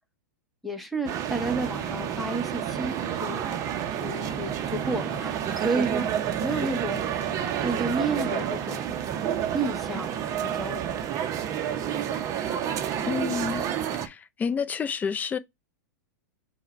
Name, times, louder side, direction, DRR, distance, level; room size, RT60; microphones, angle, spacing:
voice 1, 0.6-3.6 4.0-7.1 7.6-8.9 9.5-11.1, right 3 dB, ahead, 0.8 m, -31 dB
sound 1, 1.0-14.1, right 9 dB, 35° right, 0.6 m, -29 dB
voice 2, 13.0-13.6 14.0-15.4, left 6 dB, 15° left, 0.4 m, -29 dB
5.4 x 2.2 x 4.2 m
hypercardioid pair, 120°, 10 cm